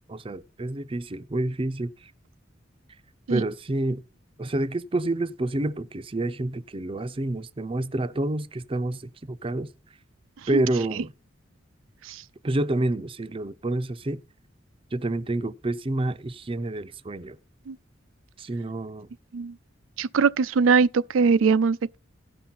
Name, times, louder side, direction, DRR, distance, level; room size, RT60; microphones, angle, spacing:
voice 1, 0.1-1.9 3.3-4.0 4.4-9.7 10.5-11.1 12.4-14.2 14.9-17.4 18.4-19.1, right 2 dB, 30° right, 0.5 m, -28 dB
voice 2, 20.0-22.0, right 5 dB, 85° right, 0.4 m, -21 dB
16.0 x 5.9 x 4.0 m
head